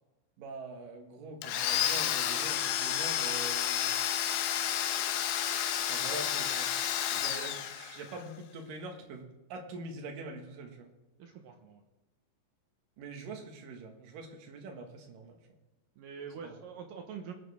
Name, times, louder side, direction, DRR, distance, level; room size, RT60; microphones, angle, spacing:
voice 1, 0.4-4.0 5.9-6.7 7.1-10.9 13.0-15.4 16.4-16.6, right 3 dB, 60° right, 2 dB, 2.9 m, -44 dB
Domestic sounds home sounds, 1.4-8.2, left 10 dB, 90° left, 3.2 m, -31 dB
voice 2, 11.2-11.8 16.0-17.3, right 6 dB, 75° right, 4 dB, 2.0 m, -45 dB
21.0 x 9.2 x 3.6 m, 1.0 s
omnidirectional pair, 5.3 m